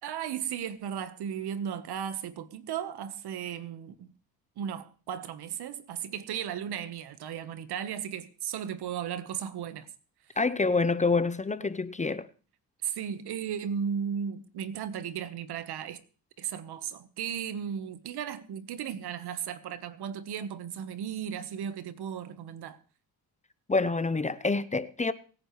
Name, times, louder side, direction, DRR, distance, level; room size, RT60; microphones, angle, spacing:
voice 1, 0.0-4.1 4.6-9.9 12.8-16.0 16.4-22.8, right 8 dB, 80° right, 1.3 m, -35 dB
voice 2, 10.4-12.3 23.7-25.1, left 3 dB, 20° left, 0.7 m, -27 dB
24.0 x 10.0 x 3.2 m
cardioid pair, 80°, 39 cm